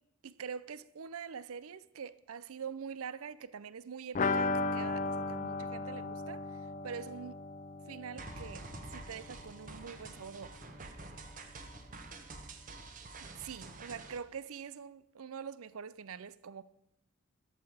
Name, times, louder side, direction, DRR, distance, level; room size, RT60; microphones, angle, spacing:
voice 1, 0.2-6.5 6.8-7.4 7.9-10.6 13.4-16.6, right 6 dB, 75° right, 0.5 m, -44 dB
sound 1, 4.1-9.8 10.0-10.1 10.4-10.5, left 3 dB, 35° left, 0.5 m, -36 dB
sound 2, 8.2-14.2, right 2 dB, 35° right, 1.1 m, -48 dB
14.0 x 10.5 x 4.9 m
head